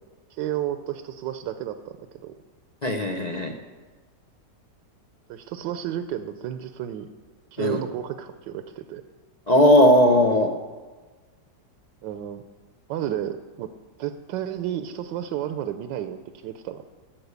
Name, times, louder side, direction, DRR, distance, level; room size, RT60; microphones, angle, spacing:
voice 1, 0.3-2.0 2.2-2.3 5.3-7.1 7.5-9.0 12.0-12.4 12.9-13.7 14.0-16.2 16.4-16.8, right 11 dB, 90° right, 10 dB, 1.3 m, -31 dB
voice 2, 2.8-3.5 7.6-7.8 9.5-10.5, left 1 dB, 45° left, 4 dB, 0.5 m, -18 dB
13.0 x 6.0 x 8.1 m, 1.4 s
omnidirectional pair, 1.9 m